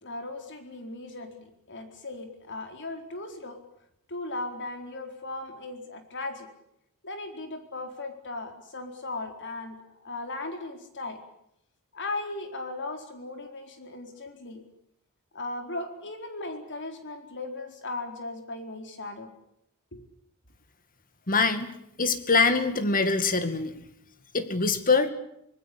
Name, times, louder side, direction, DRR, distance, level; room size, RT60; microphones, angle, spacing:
voice 1, 0.0-3.6 4.1-6.5 7.0-9.8 10.0-11.2 11.9-14.6 15.3-19.3 19.9-20.0, left 2 dB, 55° left, 6 dB, 4.3 m, -37 dB
voice 2, 21.3-21.7 22.0-23.8 24.3-25.1, left 4 dB, 40° left, 10 dB, 2.2 m, -24 dB
25.5 x 20.0 x 8.6 m, 0.75 s
head